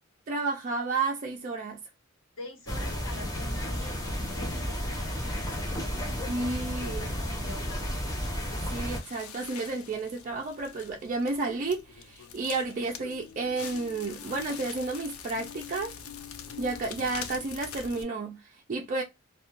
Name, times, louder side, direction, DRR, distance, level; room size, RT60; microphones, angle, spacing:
voice 1, 0.3-1.8 6.3-7.1 8.6-15.9 16.6-19.0, right 3 dB, 35° right, 0.3 m, -32 dB
voice 2, 2.4-5.7 6.8-8.0, left 1 dB, 70° left, 1.0 m, -45 dB
sound 1, 2.7-9.0, equal, 15° left, 0.6 m, -32 dB
Crackle, 7.9-18.0, left 7 dB, 85° left, 0.5 m, -44 dB
2.2 x 2.2 x 2.9 m
head